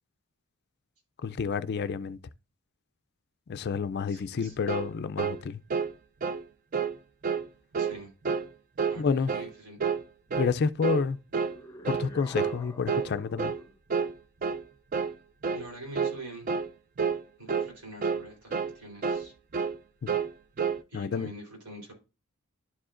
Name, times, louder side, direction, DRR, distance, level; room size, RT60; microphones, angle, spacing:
voice 1, 1.2-2.2 3.5-5.6 9.0-9.3 10.4-11.2 11.9-13.5 20.9-21.3, left 5 dB, 45° left, 0.3 m, -29 dB
voice 2, 4.1-4.6 7.8-8.1 8.9-9.8 15.5-16.5 17.4-19.3 20.9-21.9, right 1 dB, 80° right, 3.7 m, -45 dB
sound 1, 4.7-4.9 5.2-5.4 5.7-5.9 6.2-6.4 6.7-7.0 7.2-7.5 7.7-8.0 8.2-8.5 8.8-9.0 9.3-9.5 9.8-10.0 10.3-10.5 10.8-11.1 11.3-11.6 11.8-12.1 12.3-12.6 12.9-13.1 13.4-13.6 13.9-14.1 14.4-14.6 14.9-15.1 15.4-15.7 15.9-16.2 16.5-16.7 17.0-17.2 17.5-17.7 18.0-18.2 18.5-18.7 19.0-19.3 19.5-19.8 20.1-20.3 20.6-20.8, right 6 dB, 40° right, 0.4 m, -29 dB
sound 2, 11.5-13.8, left 1 dB, 15° left, 0.9 m, -48 dB
11.5 x 4.9 x 2.5 m
head